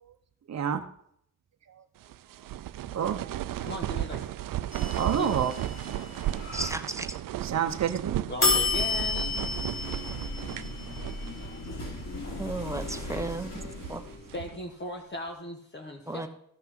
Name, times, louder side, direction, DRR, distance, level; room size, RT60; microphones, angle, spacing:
voice 1, 0.5-0.8 2.9-3.4 5.0-5.5 7.4-8.2 13.6-13.7, right 8 dB, 55° right, 6 dB, 0.8 m, -28 dB
sound 1, 2.0-11.5 11.8-11.9 12.5-13.0 13.6-14.7, right 13 dB, 90° right, 0.5 m, -35 dB
voice 2, 3.6-4.3 5.1-5.5 8.3-9.4 14.3-16.3, left 1 dB, 35° left, 2 dB, 1.1 m, -38 dB
sound 2, 4.7-6.7 8.4-14.4, left 3 dB, 55° left, 3.4 m, -32 dB
voice 3, 6.5-7.1 12.4-13.5 13.9-14.0 16.1-16.3, right 2 dB, 10° right, 6 dB, 0.8 m, -34 dB
14.0 x 6.0 x 6.0 m, 0.72 s
wide cardioid pair, 145°, 32 cm